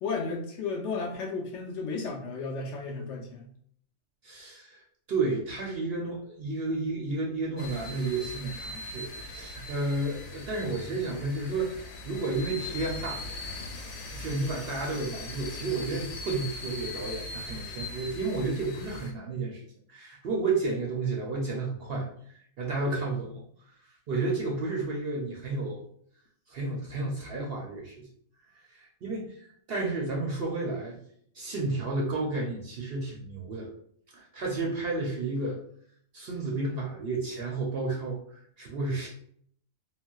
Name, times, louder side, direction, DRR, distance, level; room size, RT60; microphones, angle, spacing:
voice 1, 0.0-3.5, left 4 dB, 65° left, 0 dB, 0.8 m, -33 dB
voice 2, 4.2-4.8 5.1-13.2 14.1-19.6 19.9-22.1 22.6-23.4 24.1-25.8 26.5-28.1 28.7-29.3 29.7-31.0 31.3-33.7 34.1-35.6 36.1-38.2 38.6-39.1, right 3 dB, 60° right, -2 dB, 0.6 m, -31 dB
sound 1, 7.6-19.1, left 2 dB, 85° left, 1.1 m, -40 dB
4.0 x 2.0 x 2.3 m, 0.63 s
omnidirectional pair, 1.4 m